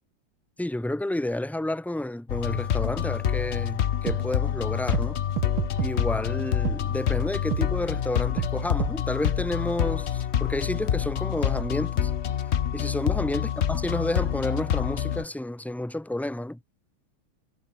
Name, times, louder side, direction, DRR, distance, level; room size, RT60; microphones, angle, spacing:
voice 1, 0.6-5.2 5.8-12.1 12.7-16.6, left 1 dB, ahead, 1.5 m, -30 dB
sound 1, 2.3-15.2, left 9 dB, 90° left, 0.5 m, -27 dB
sound 2, 3.3-3.4 4.1-4.2 4.9-5.1 5.4-5.9 6.7-6.8 7.5-7.6 8.4-8.5 8.8-8.9, right 14 dB, 80° right, 1.6 m, -28 dB
omnidirectional pair, 2.2 m